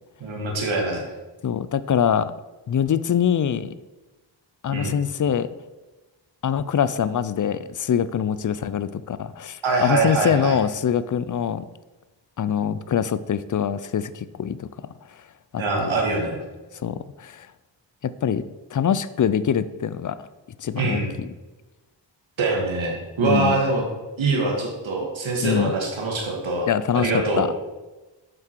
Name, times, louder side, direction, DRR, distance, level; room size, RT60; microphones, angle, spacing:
voice 1, 0.2-1.0 4.7-5.0 9.6-10.6 15.6-16.4 20.8-21.1 22.4-23.8 24.2-26.7 26.9-27.4, right 3 dB, 80° right, 0 dB, 1.9 m, -24 dB
voice 2, 1.4-2.3 2.7-3.7 4.6-5.5 6.4-11.7 12.4-14.7 15.5-15.9 16.8-17.5 18.0-18.4 18.7-20.2 20.6-21.3 23.2-23.6 25.4-25.7 26.7-27.5, left 8 dB, 45° left, 15 dB, 0.5 m, -24 dB
7.7 x 6.0 x 4.6 m, 1.1 s
cardioid pair, 60°, 46 cm